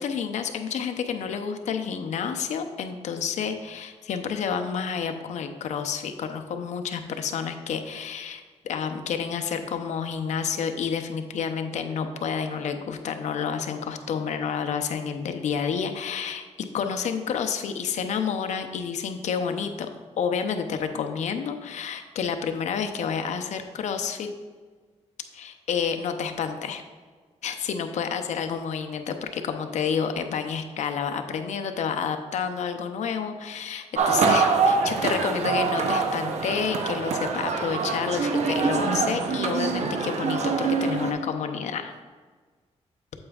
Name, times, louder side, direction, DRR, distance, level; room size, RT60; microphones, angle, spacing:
voice 1, 0.0-16.4 16.7-24.3 25.3-26.8 27.4-41.9, left 6 dB, 80° left, 7 dB, 0.7 m, -29 dB
sound 1, 33.9-41.1, right 4 dB, 70° right, 0.8 m, -25 dB
8.6 x 7.9 x 2.4 m, 1.5 s
cardioid pair, 115°, 12 cm